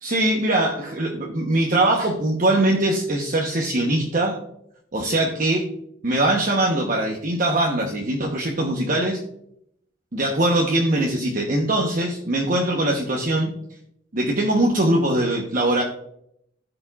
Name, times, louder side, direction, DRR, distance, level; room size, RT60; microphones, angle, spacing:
voice 1, 0.0-4.4 4.9-5.7 6.0-9.2 10.1-13.5 14.1-15.8, right 1 dB, 45° right, -1 dB, 1.0 m, -22 dB
15.0 x 5.1 x 2.4 m, 0.72 s
head